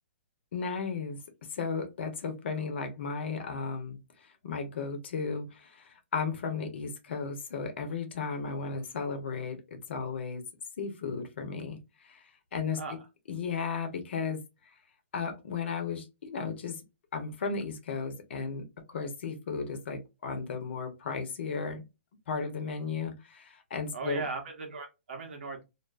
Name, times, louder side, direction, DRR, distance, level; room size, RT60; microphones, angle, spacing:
voice 1, 0.5-1.2 1.5-10.4 10.8-12.2 12.5-13.0 13.3-14.4 15.1-16.8 17.1-21.8 22.3-24.2, left 5 dB, 65° left, 0.8 m, -35 dB
voice 2, 23.9-25.6, right 4 dB, 65° right, 1.0 m, -37 dB
2.5 x 2.2 x 2.4 m
hypercardioid pair, 125°, 7 cm